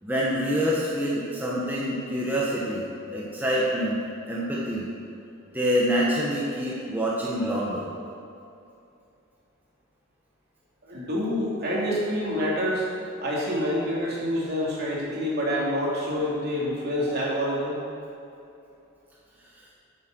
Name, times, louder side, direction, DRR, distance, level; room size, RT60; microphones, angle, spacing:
voice 1, 0.0-4.0 4.3-4.9 5.5-7.9, equal, 10° right, -6 dB, 1.3 m, -26 dB
voice 2, 10.8-12.9 13.2-17.8, equal, 55° right, -5 dB, 2.9 m, -27 dB
9.0 x 8.3 x 6.2 m, 2.7 s
head